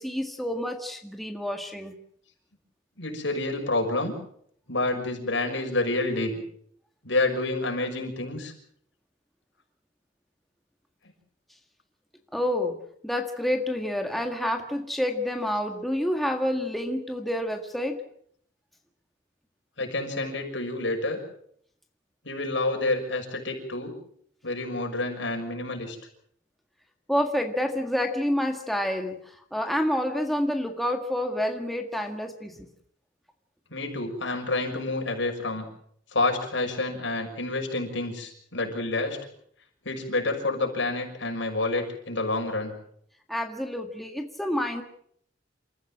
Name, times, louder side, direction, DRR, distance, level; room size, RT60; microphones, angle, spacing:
voice 1, 0.0-2.0 12.3-12.8 13.0-18.0 27.1-32.7 43.3-44.8, left 1 dB, ahead, 3 dB, 1.8 m, -28 dB
voice 2, 3.0-4.1 4.7-6.3 7.0-8.5 19.8-21.2 22.2-23.9 24.4-26.0 33.7-35.6 36.1-39.2 39.8-42.7, left 2 dB, 75° left, 2 dB, 6.2 m, -28 dB
28.5 x 14.5 x 7.6 m, 0.68 s
head